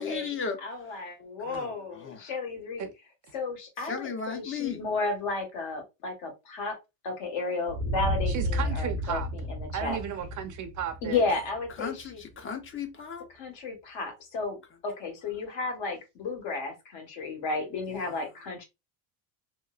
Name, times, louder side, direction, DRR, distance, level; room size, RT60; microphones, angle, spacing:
voice 1, 0.0-0.6 1.5-2.3 3.8-4.8 11.8-13.2 17.9-18.2, left 5 dB, 25° left, 0.6 m, -36 dB
voice 2, 0.6-2.8 3.3-6.8 7.0-10.0 11.0-12.2 13.3-14.6 14.8-18.6, left 3 dB, 65° left, 1.5 m, -33 dB
sound 1, 7.7-12.3, equal, 75° right, 0.7 m, -32 dB
voice 3, 8.3-9.3 9.7-11.2, right 9 dB, 40° right, 0.6 m, -34 dB
2.9 x 2.0 x 2.4 m
supercardioid pair, 100°, 48 cm